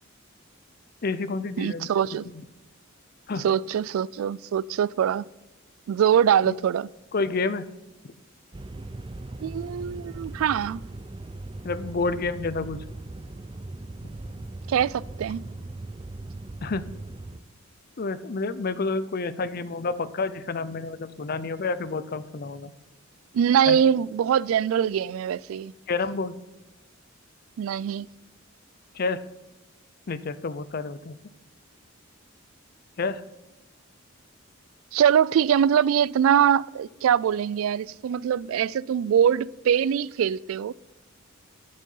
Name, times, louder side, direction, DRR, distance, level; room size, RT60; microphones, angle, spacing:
voice 1, 1.0-1.9 3.3-3.5 6.5-6.6 7.1-7.7 8.0-8.1 11.6-12.8 16.6-16.9 18.0-22.7 23.7-23.8 25.9-26.4 28.9-29.3 30.1-31.2 33.0-33.2, left 3 dB, 50° left, 0.6 m, -29 dB
voice 2, 1.6-2.3 3.4-5.3 5.9-6.9 9.4-10.8 14.7-15.4 23.3-25.7 27.6-28.1 34.9-40.7, right 8 dB, 85° right, 0.3 m, -23 dB
sound 1, 8.5-17.4, right 2 dB, 25° right, 0.5 m, -39 dB
9.3 x 7.3 x 5.5 m
head